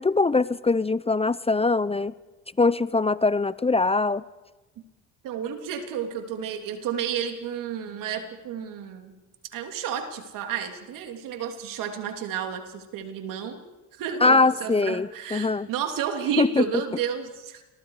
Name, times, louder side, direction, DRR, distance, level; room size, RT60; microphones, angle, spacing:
voice 1, 0.0-2.1 2.6-4.2 14.2-15.7 16.4-16.6, left 3 dB, 20° left, 18 dB, 0.7 m, -22 dB
voice 2, 5.2-9.1 9.5-13.6 14.0-17.6, right 8 dB, 75° right, 5 dB, 3.2 m, -31 dB
29.5 x 22.5 x 4.9 m, 1.1 s
supercardioid pair, 60°, 33 cm